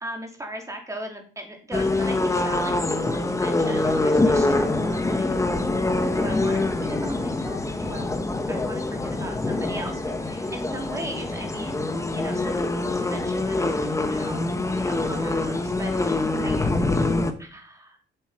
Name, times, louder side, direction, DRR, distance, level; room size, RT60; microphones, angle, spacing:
voice 1, 0.0-8.2 8.5-16.6 17.4-18.0, right 1 dB, 15° right, 2 dB, 3.1 m, -38 dB
sound 1, 1.7-17.3, left 2 dB, 15° left, 1.2 m, -25 dB
8.0 x 8.0 x 5.0 m, 0.41 s
cardioid pair, 90°, 20 cm